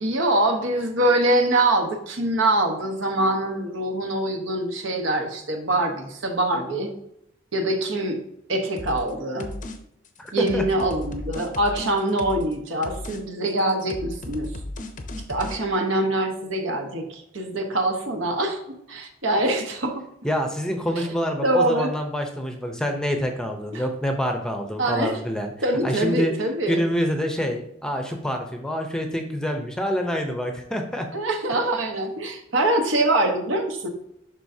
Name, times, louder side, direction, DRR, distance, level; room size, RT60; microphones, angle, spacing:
voice 1, 0.0-6.9 7.5-8.2 8.5-9.5 10.3-14.5 15.3-20.0 21.0-21.1 21.4-21.9 23.7-23.8 24.8-25.2 25.6-26.8 31.1-33.9, right 1 dB, 75° right, 3 dB, 1.2 m, -24 dB
sound 1, 8.8-9.1 9.4-9.8 10.0-12.5 12.8-13.2 13.5-15.6, left 1 dB, 40° left, 0.7 m, -35 dB
voice 2, 10.2-10.6 20.2-25.5 25.8-26.3 26.7-31.1 31.9-32.0, equal, 5° left, 4 dB, 0.7 m, -26 dB
11.0 x 3.9 x 2.7 m, 0.78 s
head